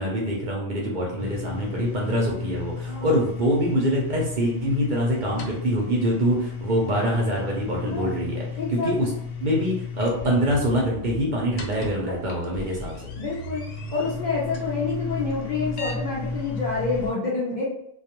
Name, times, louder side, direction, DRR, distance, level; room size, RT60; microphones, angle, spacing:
voice 1, 0.0-8.4 8.7-9.1 9.4-12.9, equal, 55° right, -3 dB, 0.6 m, -24 dB
sound 1, 1.2-17.1, left 4 dB, 80° left, 0.9 m, -34 dB
voice 2, 2.9-3.2 7.8-8.3 8.6-8.9 12.0-12.2 13.2-17.7, left 4 dB, 60° left, -6 dB, 0.5 m, -28 dB
2.3 x 2.2 x 2.8 m, 0.76 s
omnidirectional pair, 1.3 m